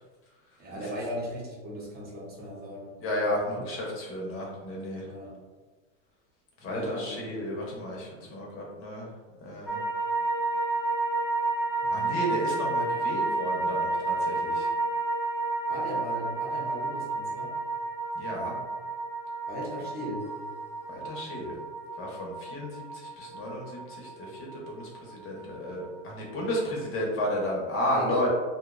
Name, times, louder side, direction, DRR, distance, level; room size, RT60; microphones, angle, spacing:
voice 1, 0.6-3.0 3.4-3.7 5.0-5.4 6.7-7.5 11.8-12.2 15.7-17.6 19.5-20.3 27.9-28.3, equal, 25° right, -5 dB, 0.8 m, -37 dB
voice 2, 3.0-5.0 6.6-9.1 9.4-9.8 11.9-14.7 18.1-18.6 20.9-21.5 22.0-28.3, equal, 35° left, -3 dB, 0.7 m, -33 dB
sound 1, 9.7-26.0 26.3-26.4, right 3 dB, 5° right, 0.3 m, -31 dB
2.6 x 2.1 x 2.4 m, 1.3 s
supercardioid pair, 125°, 38 cm